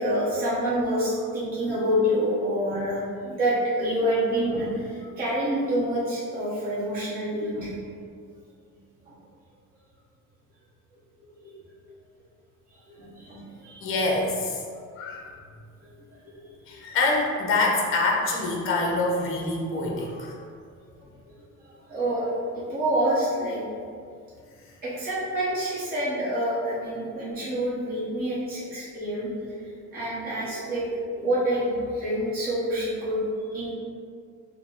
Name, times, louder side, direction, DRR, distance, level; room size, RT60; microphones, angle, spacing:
voice 1, 0.0-7.7 9.1-9.2 11.2-11.5 12.7-13.8 15.8-15.9 16.3-16.4 16.7-16.8 21.3-23.7 24.8-30.9 31.1-33.7, equal, 30° right, -9 dB, 0.9 m, -27 dB
voice 2, 13.8-14.6 15.0-15.3 16.7-20.3, left 2 dB, 40° left, -1 dB, 0.7 m, -25 dB
5.4 x 2.2 x 3.4 m, 2.2 s
cardioid pair, 180°, 32 cm